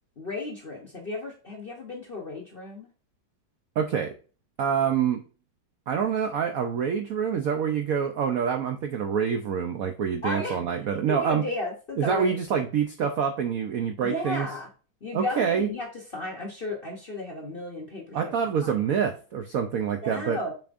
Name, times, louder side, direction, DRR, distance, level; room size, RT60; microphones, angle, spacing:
voice 1, 0.2-2.9 10.2-10.6 10.9-12.4 14.0-14.7 15.0-15.9 16.1-18.3 18.6-18.7 20.0-20.5, left 2 dB, 45° left, -1 dB, 0.7 m, -34 dB
voice 2, 3.8-4.1 4.6-5.2 5.9-11.4 12.0-14.5 15.1-15.7 18.1-20.4, right 7 dB, 75° right, 5 dB, 0.7 m, -26 dB
6.9 x 6.0 x 2.5 m, 0.36 s
omnidirectional pair, 2.2 m